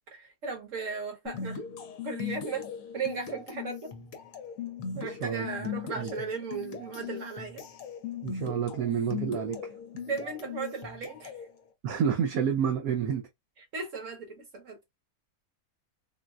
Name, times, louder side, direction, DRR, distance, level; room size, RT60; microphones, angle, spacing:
voice 1, 0.1-1.6 2.0-2.7 2.9-3.9 5.0-7.6 10.1-11.3 13.7-14.9, right 5 dB, 55° right, 1.5 m, -36 dB
sound 1, 1.3-11.5, left 7 dB, 60° left, 1.0 m, -39 dB
voice 2, 5.1-5.4 6.0-6.1 8.2-9.7 11.8-13.3, right 8 dB, 70° right, 1.0 m, -29 dB
3.9 x 2.2 x 2.3 m
omnidirectional pair, 1.7 m